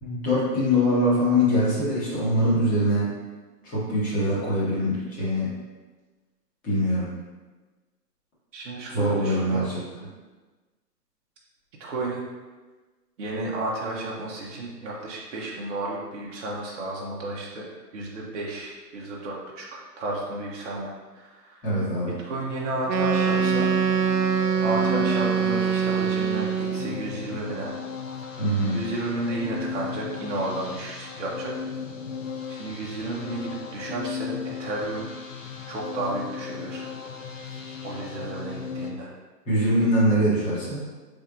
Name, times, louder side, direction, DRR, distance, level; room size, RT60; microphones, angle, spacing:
voice 1, 0.0-3.1 3.6-5.5 6.6-7.1 8.9-10.1 21.6-22.1 28.4-28.8 39.4-40.8, equal, 15° left, -9 dB, 1.3 m, -23 dB
voice 2, 8.5-9.7 11.8-12.2 13.2-17.7 17.9-21.6 22.2-23.7 24.6-27.7 28.7-31.5 32.5-35.1 35.7-36.9 37.8-39.1, right 2 dB, 45° right, -4 dB, 0.9 m, -32 dB
sound 1, 22.4-38.9, left 6 dB, 50° left, 0.6 m, -36 dB
Wind instrument woodwind instrument, 22.9-27.0, right 7 dB, 85° right, 0.6 m, -23 dB
5.2 x 3.6 x 2.5 m, 1.3 s
figure-of-eight pair, 135°, 49 cm